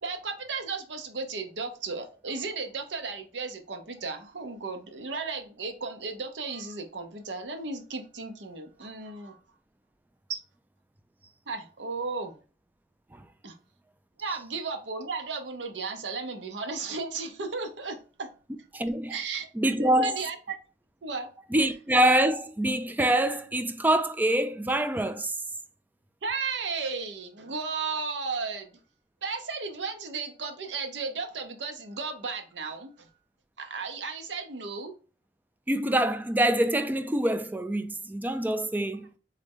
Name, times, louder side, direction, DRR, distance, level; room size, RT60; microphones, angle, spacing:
voice 1, 0.0-9.4 10.3-10.4 11.5-12.4 13.4-13.5 14.2-18.3 19.1-20.5 21.0-21.3 26.2-28.7 29.2-33.1 33.6-34.9, right 4 dB, 85° right, 0.8 m, -34 dB
voice 2, 18.7-19.1 19.6-20.2 21.5-25.4 35.7-39.1, right 1 dB, 10° right, 0.3 m, -25 dB
3.7 x 3.2 x 3.5 m
head